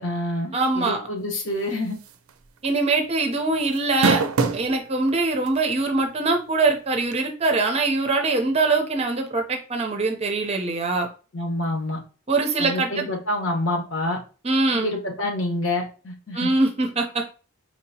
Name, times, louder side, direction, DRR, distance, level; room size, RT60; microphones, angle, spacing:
voice 1, 0.0-2.0 11.3-12.0 12.6-14.2 14.7-16.5, left 1 dB, 60° left, 2 dB, 1.1 m, -27 dB
voice 2, 0.5-1.0 2.6-4.2 4.5-11.1 12.3-13.1 14.4-14.9 16.3-17.2, right 3 dB, 30° right, 3 dB, 0.6 m, -23 dB
sound 1, 2.1-2.3 2.6-2.7 3.8-4.7 5.5-5.6 7.1-7.2, right 4 dB, 80° right, 0.5 m, -21 dB
4.6 x 2.8 x 2.7 m, 0.35 s
head